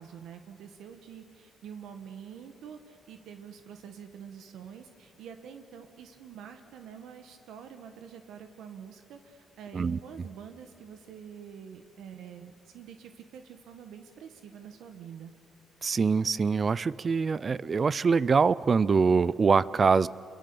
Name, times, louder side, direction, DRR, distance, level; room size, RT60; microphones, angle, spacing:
voice 1, 0.0-15.3, right 7 dB, 80° right, 7 dB, 1.4 m, -46 dB
voice 2, 15.8-20.1, right 5 dB, 35° right, 19 dB, 0.5 m, -24 dB
27.5 x 22.5 x 7.0 m, 2.4 s
cardioid pair, 115°, 0 cm